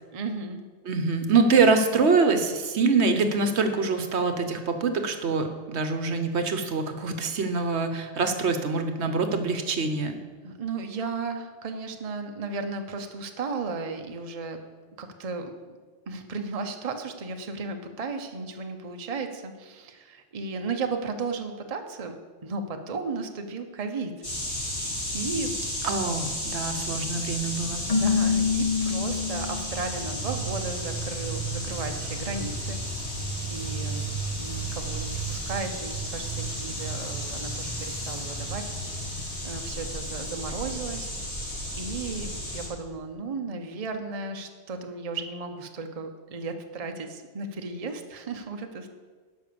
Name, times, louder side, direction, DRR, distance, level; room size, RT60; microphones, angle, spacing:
voice 1, 0.1-0.6 10.4-14.6 15.0-15.5 16.1-22.2 22.4-24.1 24.5-24.9 25.1-25.5 27.9-34.1 34.4-41.1 41.8-48.9, right 4 dB, 35° right, 5 dB, 0.8 m, -35 dB
voice 2, 0.9-10.2 25.8-27.9, right 4 dB, 65° right, 7 dB, 1.1 m, -24 dB
sound 1, 24.2-42.7, right 1 dB, 55° left, 3.3 m, -33 dB
Keyboard (musical), 27.9-29.9, left 5 dB, 35° left, 0.9 m, -25 dB
11.5 x 5.6 x 6.9 m, 1.4 s
omnidirectional pair, 1.2 m